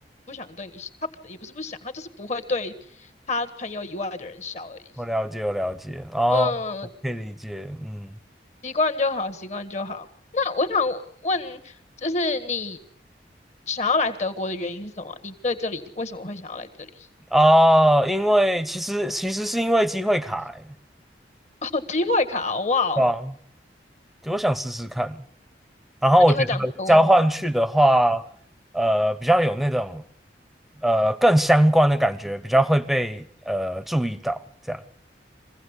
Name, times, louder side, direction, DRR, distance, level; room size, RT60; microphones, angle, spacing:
voice 1, 0.3-0.9 1.2-2.7 3.3-4.8 6.3-6.9 8.6-10.1 10.3-11.7 12.0-12.8 13.7-16.9 21.6-23.0 26.2-27.0, left 3 dB, 40° left, 1.7 m, -27 dB
voice 2, 5.0-6.5 7.0-8.1 17.3-20.6 23.0-23.2 24.2-25.2 26.0-28.2 28.7-30.0 30.8-34.4 34.7-34.8, equal, ahead, 0.9 m, -21 dB
24.0 x 16.0 x 8.2 m
head